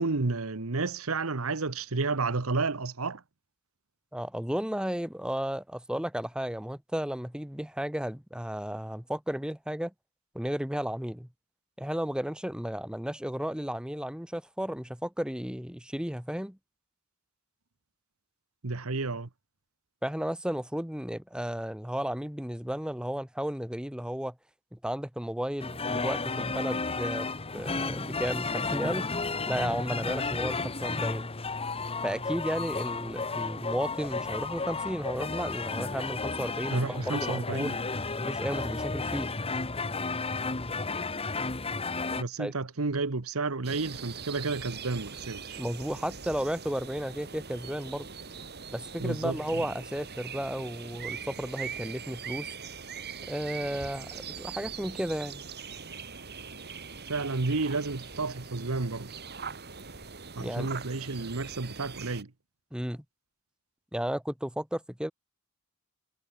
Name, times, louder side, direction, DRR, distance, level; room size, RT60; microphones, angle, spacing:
voice 1, 0.0-3.2 18.6-19.3 36.7-37.7 42.2-45.6 49.0-49.6 57.1-59.1 60.3-62.3, right 3 dB, 75° right, 1.2 m, -31 dB
voice 2, 4.1-9.9 10.3-11.3 11.8-16.6 20.0-24.3 24.7-27.3 27.5-29.1 29.5-31.2 32.0-37.8 38.2-39.3 42.4-42.5 45.6-48.1 48.7-52.5 53.3-55.4 60.4-60.7 62.7-63.0 63.9-65.1, equal, 5° right, 1.4 m, -33 dB
sound 1, 25.6-42.2, left 3 dB, 25° left, 1.4 m, -33 dB
sound 2, 43.6-62.2, right 6 dB, 50° right, 6.1 m, -42 dB
head